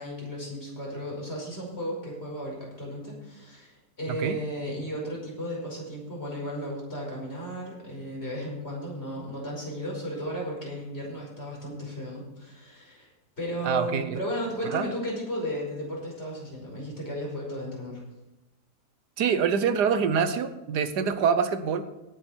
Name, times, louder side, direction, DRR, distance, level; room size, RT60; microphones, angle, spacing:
voice 1, 0.0-13.1 13.4-18.0, equal, 40° left, -3 dB, 5.7 m, -34 dB
voice 2, 13.6-14.2 14.7-14.9 19.2-21.8, right 7 dB, 80° right, 11 dB, 1.5 m, -25 dB
18.0 x 8.6 x 4.5 m, 0.99 s
omnidirectional pair, 1.7 m